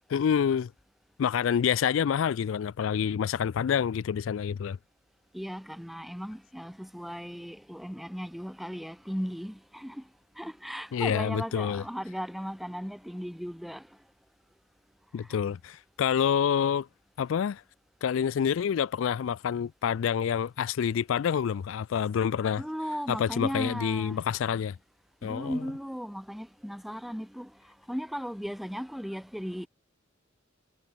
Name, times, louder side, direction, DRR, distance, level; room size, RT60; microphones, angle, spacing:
voice 1, 0.1-0.7 1.2-4.8 10.9-11.8 15.1-16.9 17.2-17.6 18.0-22.6 23.1-24.8 25.2-25.6, left 8 dB, 70° left, 0.3 m, -27 dB
voice 2, 5.3-10.1 10.3-13.9 15.2-15.4 22.6-24.2 25.2-29.7, equal, ahead, 2.9 m, -36 dB
head